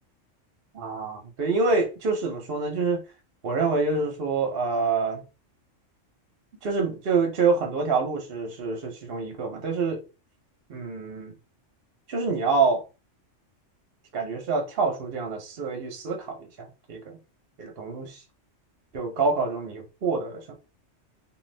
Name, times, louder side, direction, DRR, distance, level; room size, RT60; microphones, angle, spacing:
voice 1, 0.7-3.0 3.4-5.2 6.6-10.0 10.7-11.3 12.1-12.8 14.1-17.2 17.6-18.2 18.9-20.5, right 4 dB, 55° right, 0.8 m, -26 dB
2.6 x 2.5 x 3.2 m
omnidirectional pair, 1.3 m